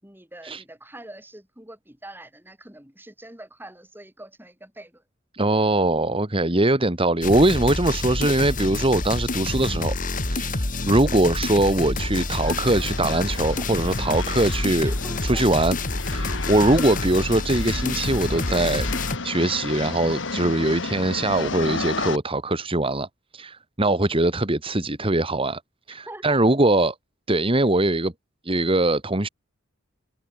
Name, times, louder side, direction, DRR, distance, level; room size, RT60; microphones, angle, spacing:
voice 1, 0.0-5.0 7.9-8.0 14.8-15.4 26.1-26.4, right 1 dB, 10° right, 5.7 m, -43 dB
voice 2, 5.3-14.9 15.2-15.8 16.1-18.9 19.2-23.1 23.3-25.6 25.9-27.0 27.3-28.1 28.4-29.3, right 2 dB, 25° right, 2.1 m, -22 dB
sound 1, 7.2-19.2, left 2 dB, 40° left, 2.4 m, -28 dB
sound 2, 12.0-22.2, left 4 dB, 65° left, 1.7 m, -33 dB
head